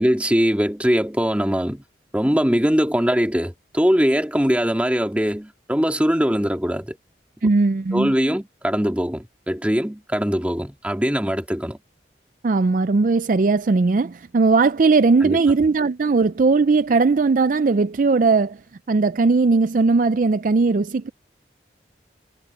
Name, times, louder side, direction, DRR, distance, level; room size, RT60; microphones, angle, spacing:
voice 1, 0.0-1.8 2.1-7.0 7.9-11.8 15.2-15.4, equal, 10° right, 2.1 m, -21 dB
voice 2, 7.4-8.1 12.4-18.6 18.9-21.1, right 4 dB, 50° right, 0.4 m, -18 dB
head